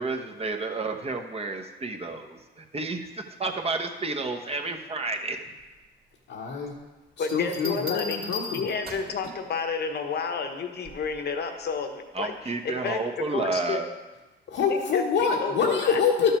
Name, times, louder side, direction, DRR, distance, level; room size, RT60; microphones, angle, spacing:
voice 1, 0.0-5.4 12.1-13.9, right 3 dB, 30° right, 4 dB, 1.1 m, -31 dB
voice 2, 6.3-6.8 7.2-8.7 14.5-16.3, left 6 dB, 80° left, -5 dB, 1.4 m, -25 dB
voice 3, 7.2-8.2 8.5-13.8 14.7-15.0 15.4-16.0, left 5 dB, 55° left, 6 dB, 1.2 m, -31 dB
Bell, 7.3-9.2 10.8-11.2, left 2 dB, 50° right, 2.3 m, -37 dB
12.0 x 6.6 x 4.5 m, 1.2 s
cardioid pair, 90°, 20 cm